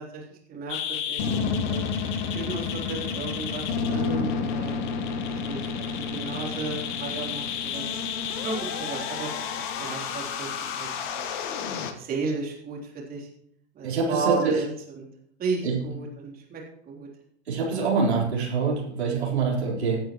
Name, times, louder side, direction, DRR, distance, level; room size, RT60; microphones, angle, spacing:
voice 1, 0.0-1.8 2.3-4.7 5.2-5.7 6.1-7.8 8.4-9.3 9.8-10.9 11.2-11.3 12.0-13.3 13.8-14.7 15.0-15.1 15.4-17.1, right 4 dB, 25° right, -2 dB, 3.6 m, -33 dB
sound 1, 0.7-11.9, left 6 dB, 45° left, 1.5 m, -30 dB
voice 2, 13.8-14.6 15.6-15.8 17.5-20.0, right 4 dB, 70° right, -3 dB, 4.1 m, -25 dB
17.0 x 9.3 x 3.1 m, 0.67 s
figure-of-eight pair, 95°, 34 cm